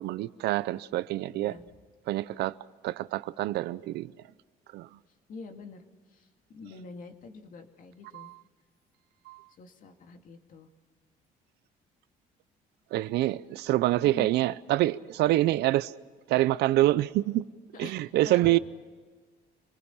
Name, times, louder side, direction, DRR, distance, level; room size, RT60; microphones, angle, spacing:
voice 1, 0.0-1.5 2.1-2.6 2.8-4.1 4.7-4.9 8.1-8.4 9.3-9.4 12.9-15.9 16.3-17.5 17.8-18.6, right 16 dB, 80° right, 0.7 m, -26 dB
voice 2, 1.3-1.6 5.3-5.8 6.1-6.3 6.5-8.3 9.6-10.7 14.0-14.3 17.7-18.6, left 4 dB, 55° left, 2.3 m, -45 dB
26.0 x 20.0 x 5.6 m
cardioid pair, 110°, 17 cm